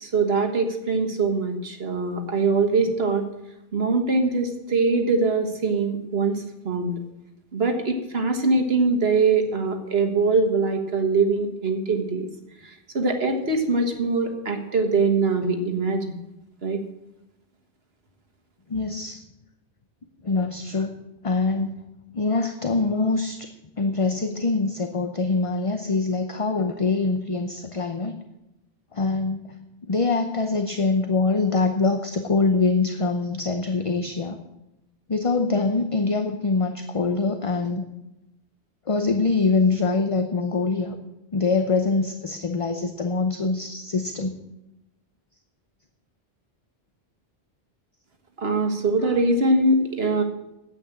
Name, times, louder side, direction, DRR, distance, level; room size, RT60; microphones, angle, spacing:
voice 1, 0.0-3.3 3.7-7.0 7.5-12.3 12.6-16.0 16.6-16.8 48.4-50.2, right 3 dB, 75° right, 5 dB, 1.8 m, -23 dB
voice 2, 18.7-19.2 20.2-21.0 21.2-21.9 22.1-23.5 23.8-28.2 28.9-29.6 29.9-34.4 35.1-37.8 38.9-41.0 41.3-44.4 49.0-49.1, left 3 dB, 35° left, 7 dB, 0.8 m, -24 dB
9.8 x 8.6 x 8.8 m, 0.92 s
omnidirectional pair, 1.0 m